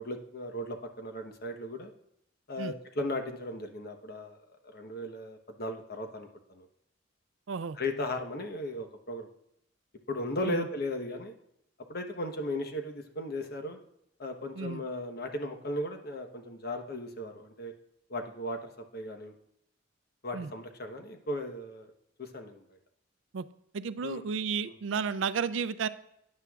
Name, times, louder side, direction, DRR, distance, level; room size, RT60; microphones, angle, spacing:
voice 1, 0.0-1.9 2.5-4.4 4.6-6.7 7.8-9.3 10.1-11.3 11.9-13.8 14.2-17.7 18.1-19.3 20.2-21.9 22.2-22.8 24.0-24.2, left 1 dB, 55° left, 5 dB, 1.1 m, -36 dB
voice 2, 7.5-7.8 10.4-10.7 14.5-14.8 20.3-20.5 23.3-23.4 23.7-25.9, right 6 dB, 70° right, 15 dB, 0.4 m, -32 dB
12.5 x 9.7 x 2.4 m, 0.76 s
head